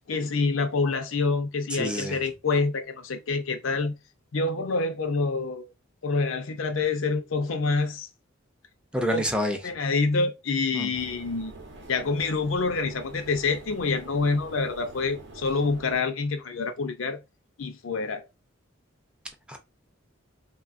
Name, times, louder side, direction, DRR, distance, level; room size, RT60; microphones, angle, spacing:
voice 1, 0.1-4.0 4.3-5.7 6.0-8.1 9.1-9.2 9.6-11.5 11.9-17.2 17.6-18.2, left 4 dB, 85° left, 0.5 m, -27 dB
voice 2, 1.7-2.2 8.9-9.6 10.7-10.9 19.5-19.6, equal, 5° right, 0.4 m, -27 dB
sound 1, 10.9-16.0, right 2 dB, 60° right, 0.7 m, -45 dB
3.1 x 2.2 x 2.4 m
head